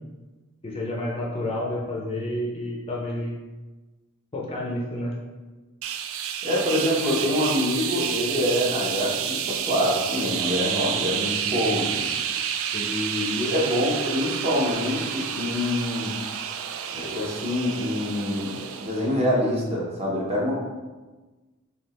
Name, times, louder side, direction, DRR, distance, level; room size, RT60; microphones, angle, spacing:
voice 1, 0.6-3.3 4.3-5.1 12.7-12.9, left 1 dB, 25° left, -3 dB, 0.6 m, -30 dB
sound 1, 5.8-19.2, right 8 dB, 60° right, 0.3 m, -30 dB
voice 2, 6.4-12.0 12.8-16.1 16.9-20.5, left 1 dB, 30° right, -4 dB, 1.0 m, -25 dB
3.5 x 2.8 x 4.1 m, 1.2 s
head